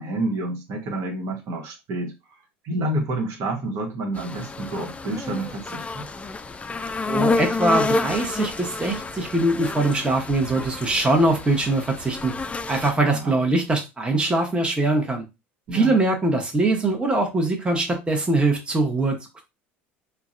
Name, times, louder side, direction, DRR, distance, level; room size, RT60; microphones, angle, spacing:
voice 1, 0.0-2.1 2.6-6.0 12.9-13.4 15.7-15.9, right 1 dB, 55° right, 1.1 m, -29 dB
sound 1, 4.1-12.9, left 3 dB, 20° left, 0.4 m, -29 dB
voice 2, 7.1-15.2 15.7-19.2, right 2 dB, 15° right, 0.9 m, -22 dB
3.8 x 2.2 x 2.5 m
hypercardioid pair, 70°, 7 cm